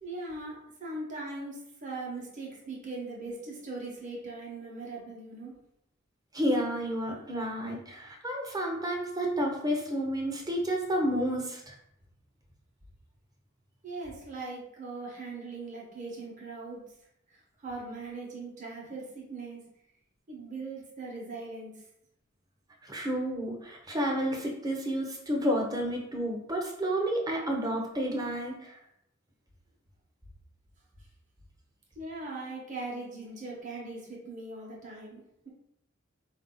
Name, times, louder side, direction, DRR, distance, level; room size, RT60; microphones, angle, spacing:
voice 1, 0.0-5.5 13.8-16.8 17.3-19.6 20.3-21.8 31.9-35.5, right 3 dB, 40° right, -3 dB, 1.2 m, -40 dB
voice 2, 6.3-11.7 22.8-28.7, equal, 20° right, 0 dB, 0.8 m, -30 dB
4.5 x 2.8 x 3.8 m, 0.78 s
head